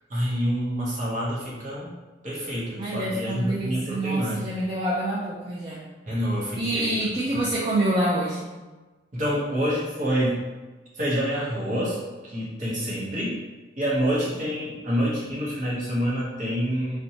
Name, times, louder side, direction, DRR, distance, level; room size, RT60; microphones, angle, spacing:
voice 1, 0.1-1.9 2.2-4.5 6.1-7.0 9.1-10.4 11.0-12.0 12.2-13.4 13.8-17.0, equal, 45° right, -6 dB, 0.8 m, -27 dB
voice 2, 2.8-5.8 6.6-8.5, right 1 dB, 30° right, -6 dB, 0.3 m, -26 dB
2.7 x 2.1 x 2.8 m, 1.2 s
head